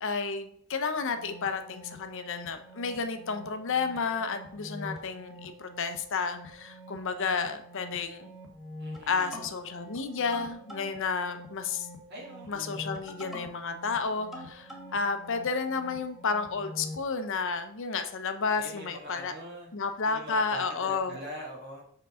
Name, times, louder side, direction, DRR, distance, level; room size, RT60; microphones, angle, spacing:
voice 1, 0.0-8.3 9.1-11.9 12.5-19.3 19.7-21.2, left 5 dB, 60° left, 8 dB, 0.7 m, -31 dB
sound 1, 1.0-17.1, left 1 dB, ahead, 1.2 m, -46 dB
voice 2, 8.8-9.4 12.1-12.9 18.6-21.8, equal, 50° right, -2 dB, 2.0 m, -43 dB
5.4 x 4.0 x 5.5 m, 0.64 s
head